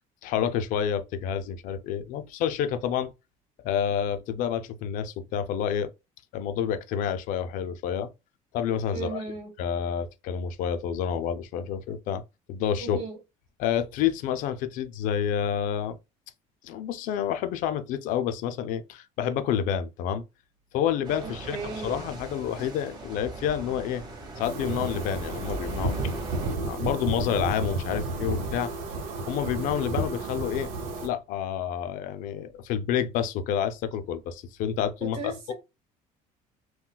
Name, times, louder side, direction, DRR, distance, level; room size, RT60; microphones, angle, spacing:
voice 1, 0.2-3.1 3.6-5.9 6.3-8.1 8.5-9.2 9.6-12.2 12.5-13.0 13.6-16.0 16.6-20.2 20.7-24.0 24.4-25.9 26.6-28.7 29.3-30.7 31.0-35.5, left 9 dB, 65° left, 0.4 m, -29 dB
voice 2, 8.9-9.5 12.8-13.2 21.2-22.0 35.0-35.5, right 3 dB, 50° right, 1.7 m, -36 dB
sound 1, 21.0-26.6, right 2 dB, 25° right, 1.0 m, -39 dB
sound 2, 24.4-31.1, right 2 dB, 85° right, 0.9 m, -32 dB
3.8 x 2.2 x 2.2 m
cardioid pair, 150°, 15 cm